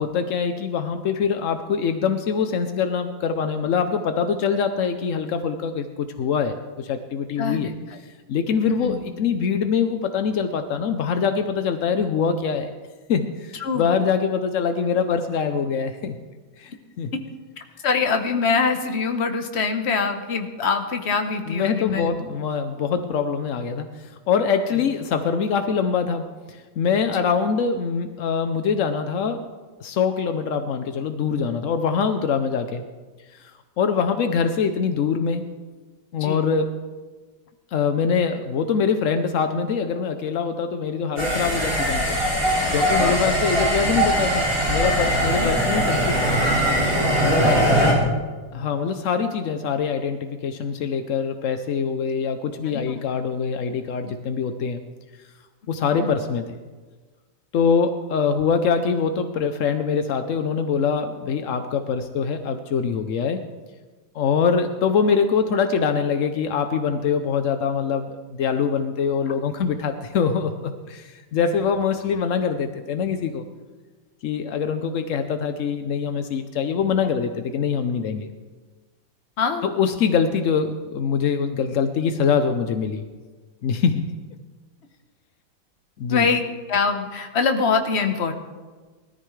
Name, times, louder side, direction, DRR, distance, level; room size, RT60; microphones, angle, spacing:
voice 1, 0.0-7.7 8.3-12.7 13.1-16.2 16.6-16.7 17.0-17.1 21.5-23.9 24.3-29.4 29.8-32.8 33.8-35.5 36.1-36.7 37.7-42.2 42.7-46.4 47.2-47.7 48.5-54.8 55.7-56.5 57.5-63.4 64.1-73.4 74.2-78.3 79.6-83.0 83.6-84.1 86.0-86.2, left 6 dB, 75° left, 8 dB, 0.7 m, -24 dB
voice 2, 7.4-8.0 8.7-9.0 13.5-13.9 17.1-17.2 17.8-22.2 24.7-24.9 27.1-27.2 36.2-36.4 42.4-42.5 43.0-43.2 45.3-45.5 47.4-48.0 52.6-53.0 54.0-54.1 56.0-56.1 79.4-79.7 86.1-88.3, left 5 dB, 45° left, 6 dB, 1.0 m, -24 dB
sound 1, 41.2-47.9, equal, 25° right, 5.7 m, -21 dB
20.0 x 13.5 x 3.2 m, 1.4 s
omnidirectional pair, 2.1 m